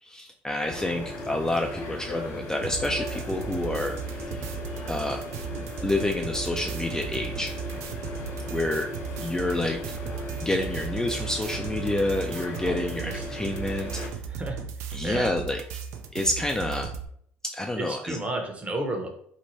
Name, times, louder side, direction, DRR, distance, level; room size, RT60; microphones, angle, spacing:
voice 1, 0.0-4.0 4.2-4.5 4.9-5.2 5.8-7.5 8.5-8.9 9.2-9.8 10.4-14.0 14.9-15.6 16.1-16.9 17.4-18.2, left 1 dB, 10° left, 2 dB, 0.3 m, -28 dB
sound 1, 0.6-14.1, left 1 dB, 60° left, 0.9 m, -37 dB
sound 2, 2.6-17.1, right 7 dB, 65° right, 0.4 m, -36 dB
voice 2, 12.6-13.2 14.3-15.3 17.8-19.1, right 2 dB, 25° right, 2 dB, 0.8 m, -33 dB
2.8 x 2.1 x 3.0 m, 0.64 s
supercardioid pair, 75°, 5 cm